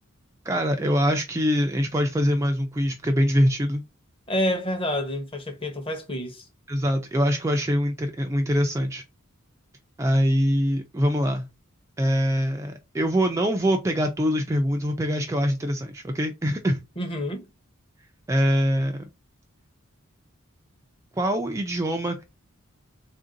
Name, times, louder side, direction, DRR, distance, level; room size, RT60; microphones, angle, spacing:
voice 1, 0.4-3.8 6.7-9.0 10.0-11.5 12.0-16.8 18.3-19.1 21.1-22.2, equal, 15° right, 0.3 m, -23 dB
voice 2, 4.3-6.5 17.0-17.4, left 1 dB, 25° left, 0.8 m, -28 dB
3.5 x 2.6 x 3.8 m
head